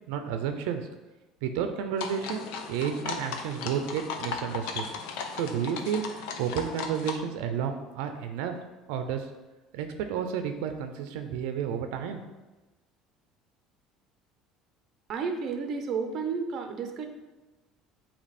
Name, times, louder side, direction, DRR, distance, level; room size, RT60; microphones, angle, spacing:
voice 1, 0.1-0.9 1.4-4.8 5.3-8.5 8.9-9.3 9.7-12.2, right 8 dB, 85° right, 7 dB, 0.5 m, -31 dB
sound 1, 2.0-7.2, left 5 dB, 85° left, 0.7 m, -36 dB
voice 2, 15.1-17.1, right 5 dB, 40° right, 5 dB, 0.7 m, -31 dB
8.4 x 2.9 x 4.2 m, 1.1 s
cardioid pair, 150°, 0 cm